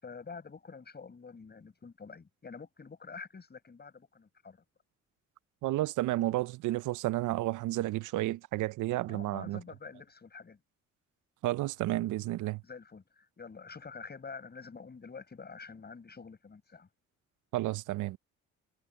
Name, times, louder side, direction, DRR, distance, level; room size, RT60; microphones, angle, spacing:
voice 1, 0.0-4.6 9.1-10.6 12.6-16.9, left 5 dB, 35° left, 5.8 m, -47 dB
voice 2, 5.6-9.6 11.4-12.6 17.5-18.2, right 17 dB, 80° right, 0.5 m, -31 dB
cardioid pair, 90°, 30 cm